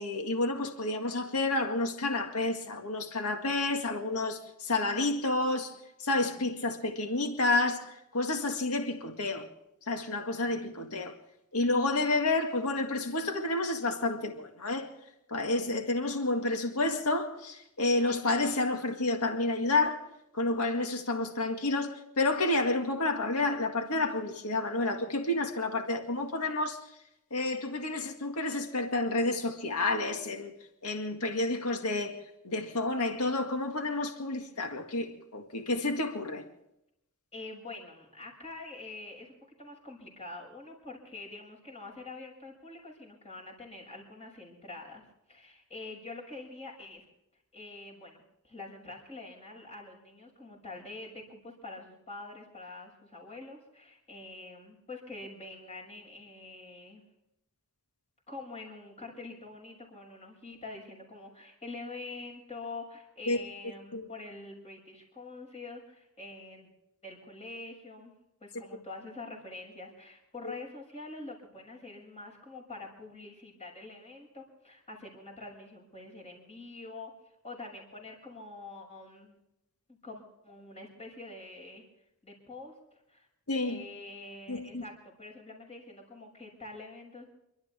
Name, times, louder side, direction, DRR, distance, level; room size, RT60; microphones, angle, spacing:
voice 1, 0.0-5.7 6.0-9.5 9.9-11.1 11.5-14.9 15.3-20.1 20.3-26.8 27.3-30.5 30.8-32.2 32.4-36.4 63.3-63.4 63.9-64.1 70.4-70.5 83.5-83.8 84.5-84.8, left 2 dB, 80° left, 1.9 m, -30 dB
voice 2, 37.3-47.0 47.5-57.0 58.3-66.7 67.0-68.1 68.4-77.1 77.4-79.4 79.9-81.8 82.2-83.3 83.6-87.2, left 2 dB, 30° left, 6.6 m, -45 dB
29.5 x 12.5 x 3.6 m
head